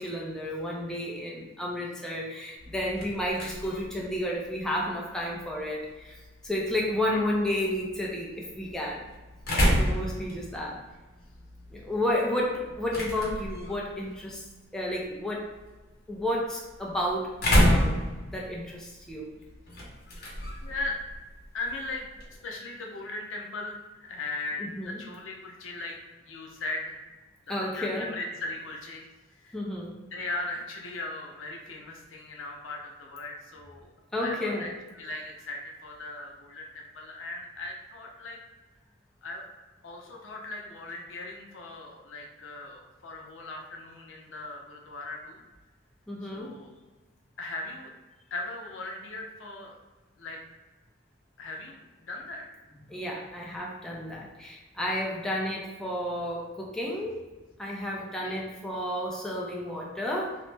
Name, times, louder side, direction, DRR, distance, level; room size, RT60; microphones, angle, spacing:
voice 1, 0.0-6.2 6.4-9.1 9.8-10.8 11.7-14.4 14.7-15.5 16.1-19.3 24.6-25.0 27.5-28.1 29.5-29.9 34.1-34.7 46.1-46.5 52.9-57.2 57.6-60.4, left 1 dB, 5° left, -3 dB, 0.4 m, -31 dB
sound 1, 2.6-22.4, equal, 55° left, 0.8 m, -32 dB
voice 2, 20.6-21.0 21.5-22.1 22.4-26.0 26.2-27.0 27.6-29.0 29.4-29.6 30.1-33.9 34.2-34.7 34.9-38.4 39.2-39.4 39.8-45.4 46.2-46.7 47.4-47.9 48.3-49.8 50.2-50.4 51.4-52.4 58.2-58.4, left 2 dB, 85° left, 0 dB, 0.6 m, -38 dB
3.0 x 2.0 x 3.2 m, 1.2 s
head